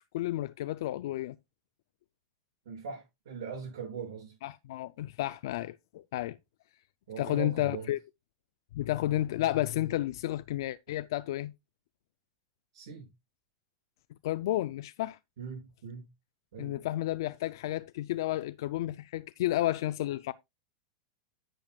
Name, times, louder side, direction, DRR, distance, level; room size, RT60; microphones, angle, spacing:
voice 1, 0.0-1.4 4.4-6.4 7.2-8.0 8.7-11.5 14.2-15.2 16.6-20.3, left 14 dB, 65° left, 0.4 m, -32 dB
voice 2, 2.6-4.3 7.1-7.9 12.7-13.1 15.4-16.1 16.5-16.9, right 6 dB, 85° right, 6.6 m, -41 dB
11.0 x 8.9 x 2.3 m
supercardioid pair, 160°, 2 cm